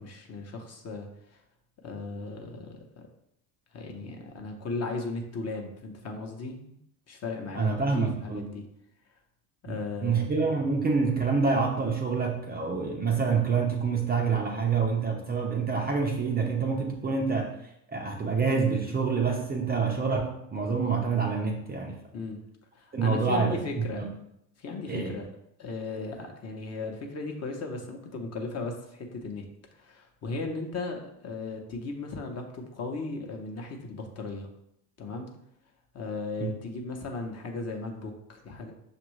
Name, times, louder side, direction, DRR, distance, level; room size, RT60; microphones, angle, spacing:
voice 1, 0.0-1.4 1.8-3.0 3.7-6.8 7.1-8.6 9.6-10.3 22.1-22.4 22.7-24.1 24.6-25.3 25.6-29.5 29.7-34.5 35.0-35.3 35.9-38.7, left 3 dB, 35° left, 2 dB, 0.9 m, -36 dB
voice 2, 7.5-8.4 9.7-22.0 22.9-24.1 24.9-25.2 36.4-36.5, right 5 dB, 20° right, 1 dB, 0.5 m, -27 dB
6.0 x 2.5 x 3.1 m, 0.77 s
hypercardioid pair, 80°, 47 cm